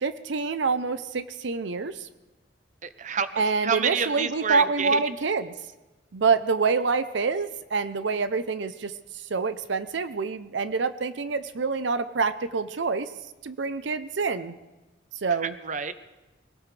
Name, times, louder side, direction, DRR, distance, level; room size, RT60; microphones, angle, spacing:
voice 1, 0.0-2.1 3.4-5.5 6.1-8.9 9.3-13.1 13.4-14.5 15.2-15.5, right 4 dB, 75° right, 12 dB, 0.6 m, -26 dB
voice 2, 2.8-5.0 15.4-15.9, right 6 dB, 40° right, 12 dB, 0.7 m, -28 dB
24.0 x 17.5 x 3.3 m, 1.1 s
head